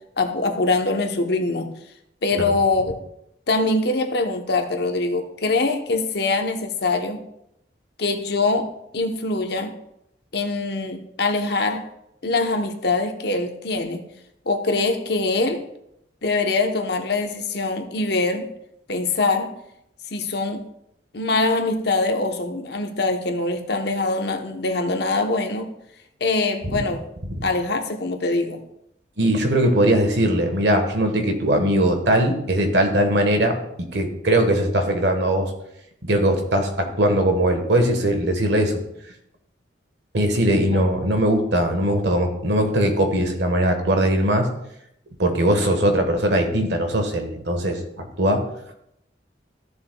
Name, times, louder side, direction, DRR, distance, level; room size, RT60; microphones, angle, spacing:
voice 1, 0.2-1.7 2.2-3.0 3.5-7.2 8.0-9.7 10.3-11.9 12.2-14.0 14.5-15.6 16.2-18.5 18.9-19.6 20.1-20.7 21.1-25.7 26.2-27.1 27.4-28.6 40.7-41.1, left 3 dB, 60° left, 5 dB, 0.9 m, -23 dB
voice 2, 29.2-35.5 36.0-38.8 40.1-44.5 45.2-48.4, right 1 dB, 65° right, 5 dB, 1.3 m, -20 dB
14.0 x 6.9 x 2.3 m, 0.78 s
head